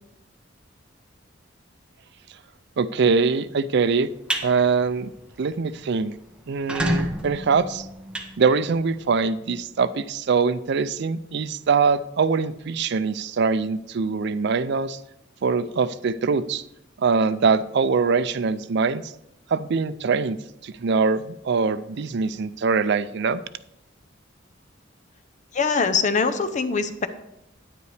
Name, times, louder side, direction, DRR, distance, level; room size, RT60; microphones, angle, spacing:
voice 1, 2.8-4.1 4.4-5.1 5.4-6.1 6.5-7.9 8.4-15.0 15.4-16.6 17.0-19.1 19.5-20.4 20.6-23.4, right 5 dB, 60° right, 14 dB, 0.4 m, -23 dB
sound 1, 4.1-4.5 4.9-5.2 5.5-5.6 5.8-5.9 6.5-9.0, equal, 5° right, 0.9 m, -28 dB
voice 2, 25.5-27.1, left 5 dB, 40° left, 9 dB, 0.6 m, -23 dB
9.7 x 9.3 x 3.3 m, 0.83 s
head